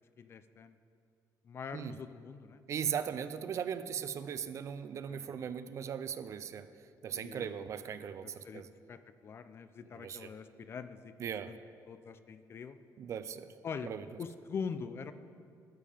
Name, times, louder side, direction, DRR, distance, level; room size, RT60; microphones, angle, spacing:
voice 1, 0.2-0.7 1.4-2.6 5.1-5.4 7.1-7.6 8.4-8.6 8.9-11.6 11.9-12.8 13.6-13.9 14.2-15.1, left 6 dB, 35° left, 12 dB, 0.4 m, -43 dB
voice 2, 2.7-6.7 7.0-8.7 9.9-10.3 11.2-11.5 13.0-13.5 13.8-14.0, right 8 dB, 45° right, 12 dB, 0.4 m, -38 dB
12.0 x 7.4 x 5.0 m, 2.4 s
cardioid pair, 160°, 7 cm